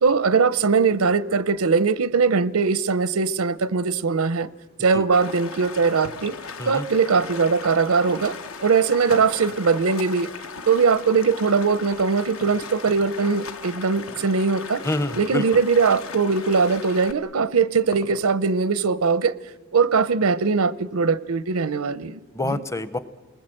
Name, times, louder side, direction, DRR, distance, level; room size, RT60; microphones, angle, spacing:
voice 1, 0.0-4.5 4.8-6.4 6.7-8.3 8.6-10.3 10.7-14.8 15.2-19.3 19.7-22.6, right 5 dB, 85° right, 0.7 m, -21 dB
Stream, 5.1-17.1, left 4 dB, 70° left, 1.3 m, -37 dB
sound 1, 9.1-11.0 12.4-13.3 14.0-14.4 14.8-14.9 15.6-15.8 17.1-18.6, left 3 dB, 45° left, 1.5 m, -43 dB
voice 2, 14.8-15.4 22.3-23.0, left 1 dB, 15° left, 0.7 m, -27 dB
29.0 x 20.0 x 7.7 m
head